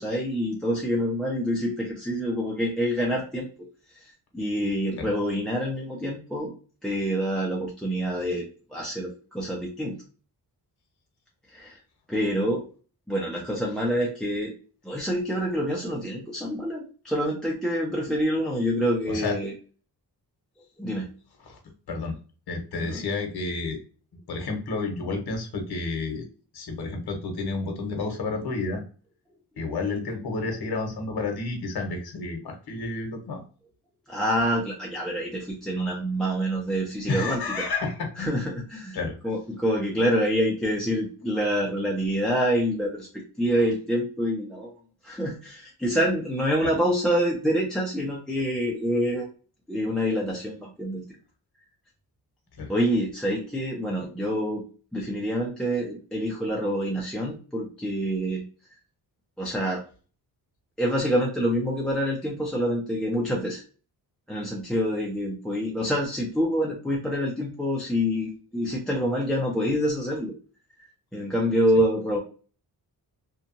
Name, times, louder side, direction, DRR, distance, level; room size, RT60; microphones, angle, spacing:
voice 1, 0.0-3.5 3.9-6.5 6.8-10.0 11.5-11.8 12.1-12.6 13.1-14.5 14.8-19.5 20.8-21.1 22.8-23.0 34.1-37.7 38.2-39.0 39.2-44.7 45.0-49.3 49.7-51.0 52.7-54.6 54.9-58.4 59.4-59.8 60.8-63.6 64.3-70.3 70.8-70.9 71.1-72.2, equal, ahead, -2 dB, 0.4 m, -26 dB
voice 2, 19.1-19.4 21.4-21.6 21.9-22.2 22.5-23.8 24.3-26.3 26.5-28.8 29.6-33.4 37.1-38.3 38.9-39.2 46.6-46.7 52.6-52.7, left 3 dB, 70° left, 3 dB, 0.9 m, -30 dB
2.8 x 2.2 x 2.5 m, 0.38 s
wide cardioid pair, 140°, 39 cm